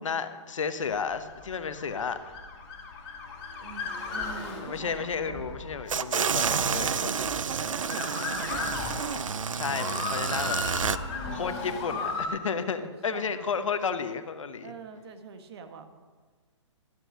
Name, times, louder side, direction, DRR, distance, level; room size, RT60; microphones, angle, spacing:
voice 1, 0.0-2.4 4.5-7.3 9.5-10.6 11.3-14.7, left 6 dB, 75° left, 11 dB, 1.0 m, -32 dB
Motor vehicle (road) / Siren, 1.2-12.3, left 4 dB, 30° left, 2.7 m, -36 dB
voice 2, 3.6-5.7 6.4-7.0 7.4-8.7 9.8-10.7 11.2-12.3 12.8-13.5 14.6-15.9, right 5 dB, 55° right, 8 dB, 1.4 m, -43 dB
sound 1, 5.9-11.0, right 7 dB, 85° right, 0.5 m, -29 dB
12.0 x 7.7 x 6.2 m, 1.4 s
hypercardioid pair, 135°, 16 cm